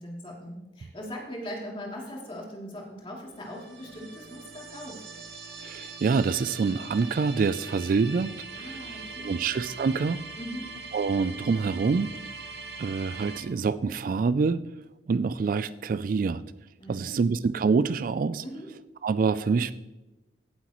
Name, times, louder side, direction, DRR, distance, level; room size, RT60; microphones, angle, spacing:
voice 1, 0.0-5.1 8.5-9.3 9.7-9.8 10.4-10.7 16.8-17.2 18.4-18.7, equal, 30° left, -2 dB, 2.9 m, -40 dB
sound 1, 3.3-13.4, right 4 dB, 75° right, 1.7 m, -42 dB
voice 2, 5.6-10.2 10.9-12.1 12.8-14.6 15.1-16.5 16.9-18.4 19.0-19.7, right 4 dB, 50° right, 15 dB, 0.3 m, -26 dB
17.0 x 7.9 x 3.1 m, 1.0 s
head